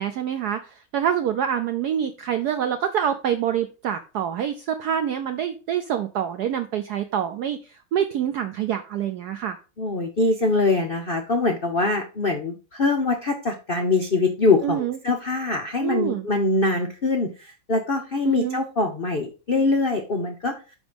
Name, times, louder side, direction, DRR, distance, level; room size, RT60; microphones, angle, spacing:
voice 1, 0.0-9.6 14.6-15.0 15.8-16.2 18.3-18.6, right 9 dB, 80° right, 8 dB, 0.9 m, -26 dB
voice 2, 9.8-20.5, left 3 dB, 70° left, 4 dB, 0.5 m, -23 dB
6.1 x 5.3 x 5.1 m, 0.33 s
omnidirectional pair, 2.3 m